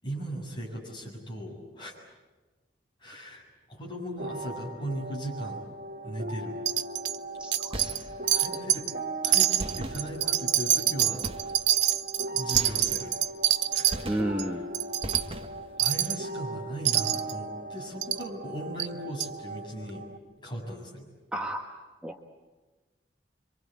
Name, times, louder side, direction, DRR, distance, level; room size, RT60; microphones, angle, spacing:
voice 1, 0.0-2.0 3.0-3.4 3.7-5.6 6.0-6.6 8.3-8.9 9.2-11.3 12.3-13.1 13.7-14.1 14.4-14.6 15.8-20.0 20.4-21.1, equal, 25° left, -2 dB, 7.5 m, -38 dB
sound 1, 4.2-20.2, right 2 dB, 55° right, 2.7 m, -39 dB
Wind chime, 6.7-7.2 7.5-8.0 8.3-8.9 9.2-14.0 14.4-14.5 14.7-15.2 15.8-16.2 16.9-17.3 18.0-18.2 18.8-18.9 19.2-19.3, right 12 dB, 85° right, 0.8 m, -25 dB
voice 2, 7.4-7.9 14.0-14.6 21.3-21.6 22.0-22.2, right 1 dB, 5° right, 1 dB, 1.3 m, -31 dB
sound 2, 7.7-8.4 9.6-10.5 11.2-11.8 12.5-13.3 13.9-14.6 15.0-15.8, right 1 dB, 30° right, 1.4 m, -39 dB
27.0 x 25.0 x 8.6 m, 1.3 s
head